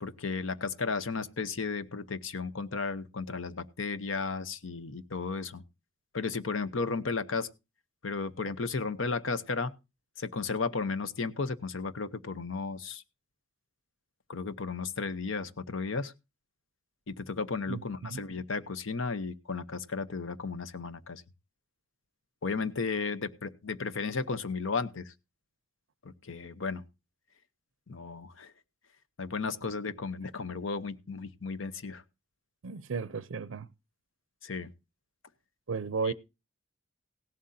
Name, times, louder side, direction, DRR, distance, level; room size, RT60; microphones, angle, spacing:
voice 1, 0.0-5.6 6.1-7.5 8.0-9.7 10.2-13.0 14.3-16.1 17.1-21.2 22.4-25.0 26.3-26.8 27.9-28.5 29.2-32.0 34.4-34.7 36.0-36.1, left 4 dB, 75° left, 0.8 m, -34 dB
voice 2, 17.7-18.2 32.6-33.7 35.7-36.1, right 5 dB, 70° right, 0.5 m, -34 dB
16.5 x 11.5 x 2.7 m
head